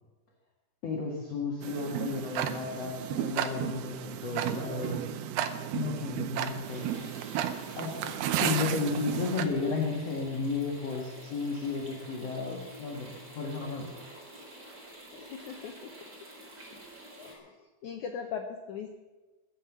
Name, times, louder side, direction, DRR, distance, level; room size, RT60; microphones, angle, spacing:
voice 1, 0.8-5.1 5.7-6.9 7.7-13.9, left 4 dB, 50° left, 0 dB, 2.2 m, -33 dB
Tick-tock, 1.6-9.5, right 10 dB, 80° right, 2.7 m, -33 dB
Guitar, 4.3-9.5, right 7 dB, 55° right, 4.2 m, -46 dB
sound 1, 6.6-17.3, right 1 dB, 25° right, 4.1 m, -49 dB
voice 2, 15.1-16.0 17.2-19.0, left 6 dB, 85° left, 5 dB, 1.7 m, -40 dB
21.5 x 7.7 x 7.2 m, 1.2 s
omnidirectional pair, 4.7 m